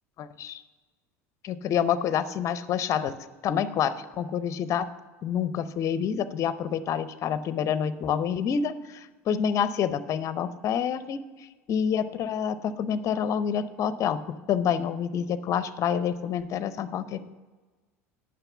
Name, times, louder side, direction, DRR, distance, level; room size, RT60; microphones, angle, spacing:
voice 1, 0.2-0.6 1.4-3.1 3.4-4.9 5.2-17.3, left 8 dB, 40° left, 14 dB, 0.6 m, -28 dB
8.9 x 6.2 x 6.9 m, 1.3 s
hypercardioid pair, 75°, 8 cm